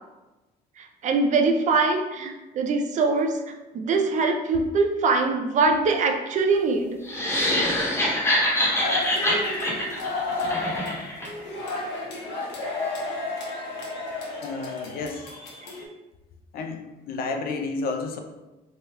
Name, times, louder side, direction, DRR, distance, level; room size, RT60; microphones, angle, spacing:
voice 1, 0.8-3.4 3.7-7.0, right 3 dB, 45° right, 4 dB, 0.4 m, -23 dB
sound 1, 7.0-11.3, left 1 dB, 15° left, 0.8 m, -25 dB
sound 2, 8.8-15.8, left 2 dB, 85° left, 0.8 m, -31 dB
voice 2, 14.4-15.3 16.5-18.2, left 3 dB, 60° left, 5 dB, 0.4 m, -31 dB
3.2 x 2.3 x 2.9 m, 1.1 s
cardioid pair, 110°, 17 cm